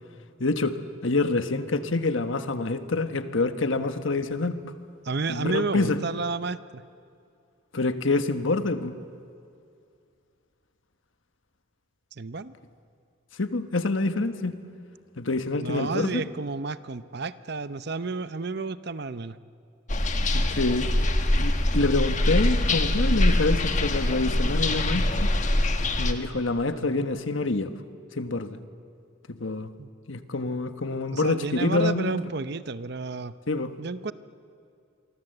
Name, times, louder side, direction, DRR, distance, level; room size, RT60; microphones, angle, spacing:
voice 1, 0.4-4.6 5.3-6.0 7.7-9.0 13.4-14.6 15.2-16.2 20.3-21.1 21.4-25.3 26.0-27.7 28.2-28.6 29.3-29.7 30.1-32.1 33.5-33.7, left 3 dB, 70° left, 9 dB, 1.3 m, -26 dB
voice 2, 5.0-6.8 12.1-12.5 15.6-19.4 29.8-29.9 31.1-33.3 33.8-34.1, right 4 dB, 55° right, 14 dB, 0.7 m, -31 dB
sound 1, 19.9-26.1, left 1 dB, 35° left, 1.5 m, -23 dB
27.0 x 24.5 x 7.9 m, 2.4 s
head